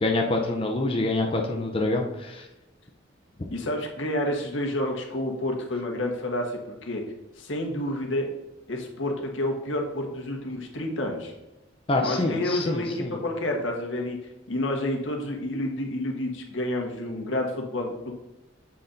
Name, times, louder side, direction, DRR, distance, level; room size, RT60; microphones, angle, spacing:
voice 1, 0.0-2.5 11.9-13.2, left 2 dB, 30° left, 1 dB, 0.6 m, -26 dB
voice 2, 3.5-7.0 7.4-8.3 8.7-11.3 12.0-14.2 14.5-18.1, left 1 dB, 80° left, 1 dB, 1.3 m, -29 dB
7.6 x 4.1 x 3.8 m, 1.0 s
head